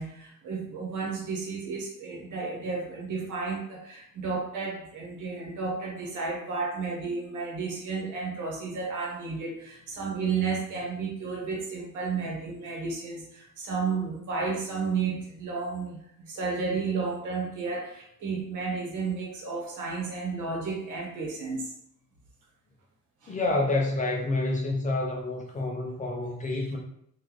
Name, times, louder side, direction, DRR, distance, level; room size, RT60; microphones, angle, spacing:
voice 1, 0.0-21.6 23.2-23.4 26.5-26.6, right 4 dB, 75° right, -1 dB, 1.1 m, -32 dB
voice 2, 23.3-26.8, left 2 dB, 25° left, 0 dB, 0.5 m, -28 dB
3.9 x 2.5 x 3.1 m, 0.71 s
cardioid pair, 145°, 31 cm